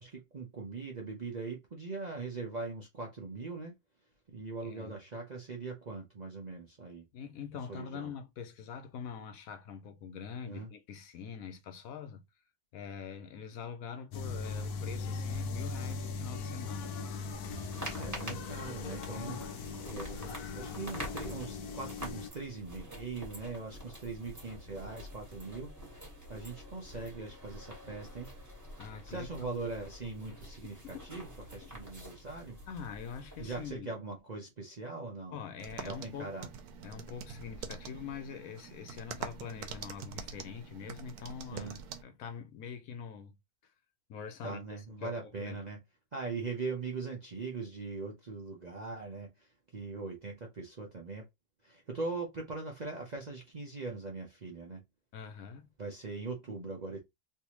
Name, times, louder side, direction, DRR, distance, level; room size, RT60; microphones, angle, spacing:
voice 1, 0.0-3.7 4.3-7.0 7.7-8.1 10.5-10.7 18.0-19.4 19.8-28.3 29.0-32.6 33.4-35.4 35.8-36.5 41.5-41.8 44.4-45.8 46.1-51.3 51.6-54.8 55.8-57.0, right 3 dB, 45° right, 0.5 m, -41 dB
voice 2, 4.6-5.0 7.1-12.2 12.7-17.0 19.1-19.7 28.8-29.5 30.6-31.1 31.6-31.7 32.7-33.9 35.3-36.3 36.8-41.8 42.0-43.3 44.1-45.6 55.1-55.7, left 7 dB, 70° left, 1.0 m, -44 dB
sound 1, 14.1-22.3, left 4 dB, 90° left, 1.2 m, -39 dB
sound 2, 17.3-33.7, equal, 10° right, 1.3 m, -47 dB
sound 3, 35.6-42.0, right 6 dB, 90° right, 1.2 m, -45 dB
3.3 x 2.7 x 2.9 m
omnidirectional pair, 1.6 m